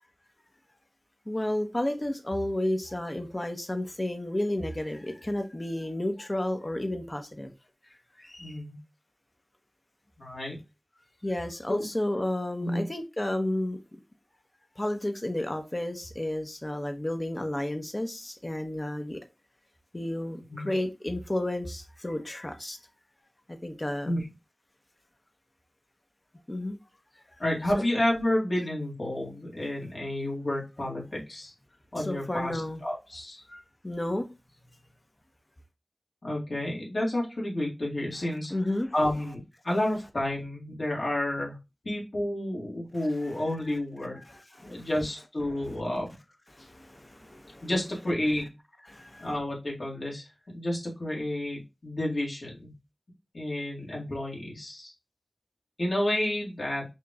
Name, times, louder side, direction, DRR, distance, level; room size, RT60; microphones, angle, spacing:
voice 1, 1.3-7.5 8.2-8.5 11.2-13.8 14.8-19.2 19.9-22.8 23.5-24.1 26.5-26.8 27.7-27.8 32.0-32.8 33.5-34.3 38.5-38.9 43.2-43.3 44.3-44.9 46.6-47.7 48.9-49.3, left 1 dB, 35° left, 0.9 m, -32 dB
voice 2, 8.4-8.8 10.2-10.6 11.7-11.8 12.6-12.8 20.5-20.7 24.0-24.3 27.4-31.5 31.9-33.4 36.2-38.5 38.9-41.6 41.8-44.2 44.6-46.1 47.6-48.5 49.2-52.7 53.3-54.9 55.8-56.8, left 1 dB, 70° left, 2.0 m, -30 dB
5.6 x 3.0 x 2.4 m
wide cardioid pair, 50°, 0 cm